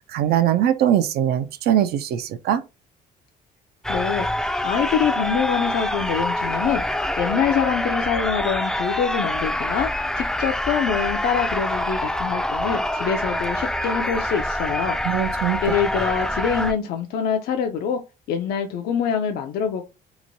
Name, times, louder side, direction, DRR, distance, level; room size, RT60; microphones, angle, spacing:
voice 1, 0.1-2.6 15.0-15.6, right 10 dB, 70° right, 0.4 m, -21 dB
sound 1, 3.8-16.7, left 1 dB, 5° left, 0.3 m, -25 dB
voice 2, 3.9-4.3 4.6-6.8 7.2-9.9 10.2-15.0 15.6-18.0 18.3-19.8, left 7 dB, 70° left, 0.4 m, -25 dB
2.9 x 2.1 x 2.6 m
cardioid pair, 110°, 17 cm